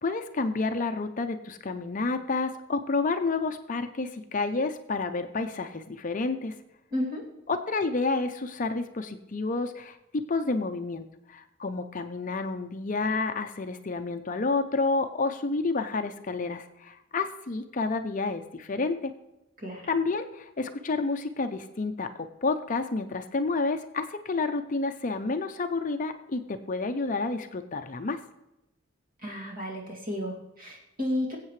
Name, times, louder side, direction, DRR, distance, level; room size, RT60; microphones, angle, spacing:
voice 1, 0.0-6.6 7.5-19.1 19.9-28.2, left 3 dB, 35° left, 8 dB, 0.5 m, -30 dB
voice 2, 6.9-7.2 19.6-19.9 29.2-31.4, left 1 dB, 45° right, -2 dB, 2.6 m, -32 dB
22.0 x 8.0 x 3.2 m, 0.92 s
head